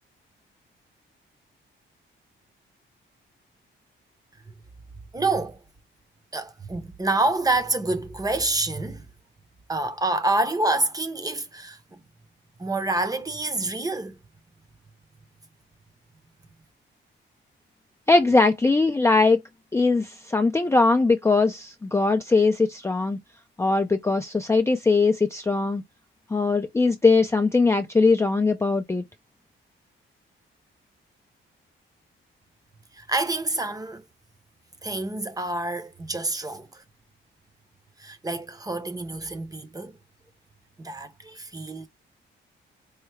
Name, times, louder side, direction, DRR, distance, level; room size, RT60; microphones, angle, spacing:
voice 1, 5.1-5.6 6.3-9.1 9.7-12.0 12.6-14.2 32.9-34.0 34.8-36.8 38.0-39.9 40.8-41.9, right 2 dB, 15° right, 0.7 m, -27 dB
voice 2, 18.1-19.4 19.7-23.2 23.6-25.8 26.3-29.0, left 3 dB, 15° left, 0.4 m, -20 dB
4.6 x 2.0 x 3.2 m
cardioid pair, 100°, 21 cm